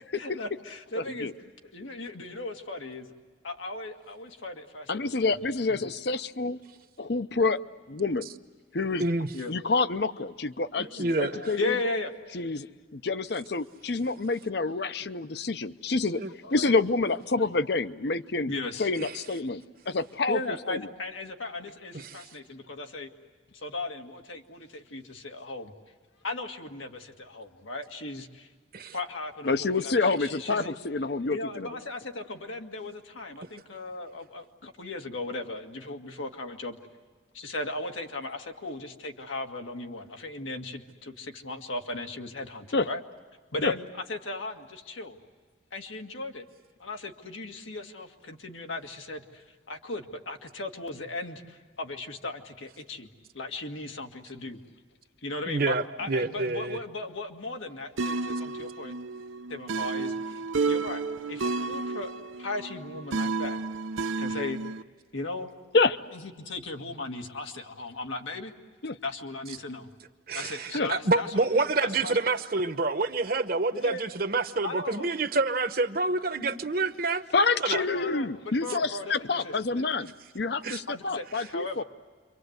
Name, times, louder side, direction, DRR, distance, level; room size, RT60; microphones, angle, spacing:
voice 1, 0.2-1.3 1.7-3.1 3.4-5.3 5.7-5.9 9.3-9.5 10.9-12.1 15.3-15.4 16.4-16.7 18.5-18.9 20.3-23.1 23.6-25.7 26.2-28.5 28.9-30.7 31.3-36.8 37.3-43.0 43.5-45.2 45.7-46.5 46.8-53.1 53.3-54.6 55.2-59.0 59.5-60.1 60.7-63.6 64.2-64.6 65.1-65.5 66.1-68.5 69.0-69.9 70.3-71.5 71.8-72.2 73.7-74.1 74.6-75.1 77.8-79.8 80.9-81.8, left 2 dB, 90° left, 3 dB, 2.0 m, -37 dB
voice 2, 4.9-6.6 7.0-7.6 7.9-8.3 8.7-9.0 9.5-11.7 12.3-12.7 12.9-16.2 16.5-18.5 18.8-20.4 20.7-20.8 29.4-31.7 42.7-42.9 43.6-43.7 65.7-66.0 68.8-69.0 70.7-70.9 77.3-81.8, left 3 dB, 55° left, 13 dB, 0.7 m, -27 dB
voice 3, 10.8-11.5 16.2-16.3 19.0-19.2 21.9-22.2 28.7-28.9 55.5-56.8 70.3-77.2 77.6-77.8 80.6-80.8, right 3 dB, 50° right, 9 dB, 1.0 m, -28 dB
sound 1, 58.0-64.8, right 3 dB, 90° right, 0.7 m, -31 dB
28.5 x 24.5 x 8.1 m, 1.5 s
head